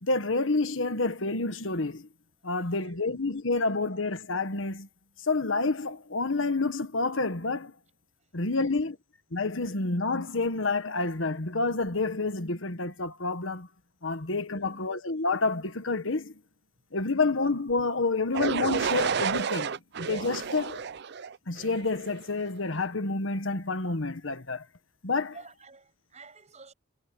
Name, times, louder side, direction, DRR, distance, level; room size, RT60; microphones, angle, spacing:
voice 1, 0.0-2.1 2.4-4.9 5.2-7.7 8.3-8.9 9.3-13.7 14.0-16.3 16.9-20.8 21.5-24.6 25.0-25.3, left 3 dB, 70° left, 1.5 m, -29 dB
voice 2, 2.6-3.1 8.6-8.9 14.5-14.8 25.3-26.7, right 3 dB, 35° right, 7.6 m, -52 dB
sound 1, 18.3-22.2, right 6 dB, 55° right, 0.5 m, -31 dB
head